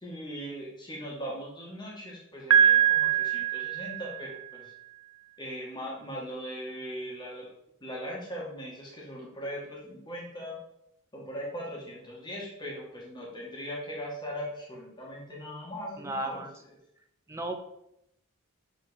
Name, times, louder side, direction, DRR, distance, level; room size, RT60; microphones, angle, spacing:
voice 1, 0.0-4.7 5.4-7.5 7.8-10.6 11.1-16.5, equal, 20° left, -4 dB, 1.5 m, -39 dB
Piano, 2.5-4.4, right 9 dB, 90° right, 0.6 m, -23 dB
voice 2, 16.0-16.5 17.3-17.6, right 1 dB, 15° right, 4 dB, 0.5 m, -34 dB
6.9 x 3.8 x 4.1 m, 0.80 s
head